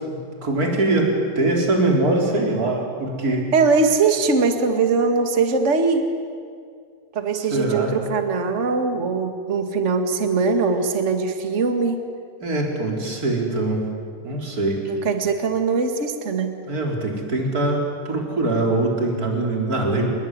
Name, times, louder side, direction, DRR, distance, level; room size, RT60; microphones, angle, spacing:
voice 1, 0.0-3.5 7.4-8.0 12.4-13.9 14.2-14.8 16.7-20.1, right 2 dB, 20° right, 0 dB, 4.4 m, -22 dB
voice 2, 3.5-6.0 7.1-12.0 14.9-16.6, right 4 dB, 40° right, 6 dB, 1.0 m, -21 dB
29.0 x 20.5 x 9.6 m, 2.2 s
omnidirectional pair, 4.8 m